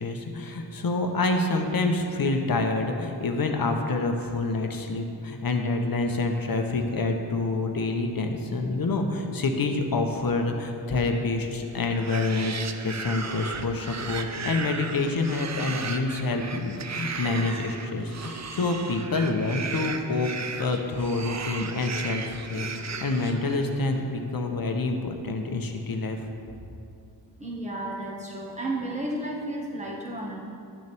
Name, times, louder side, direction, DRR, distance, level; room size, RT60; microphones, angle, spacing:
voice 1, 0.0-20.3 20.6-22.2 22.5-26.2, left 3 dB, 55° left, 4 dB, 0.9 m, -27 dB
sound 1, 11.8-23.9, right 5 dB, 40° right, 0.6 m, -36 dB
voice 2, 27.4-30.4, right 1 dB, 15° right, -3 dB, 1.6 m, -32 dB
11.0 x 6.6 x 3.5 m, 2.5 s
wide cardioid pair, 75°, 42 cm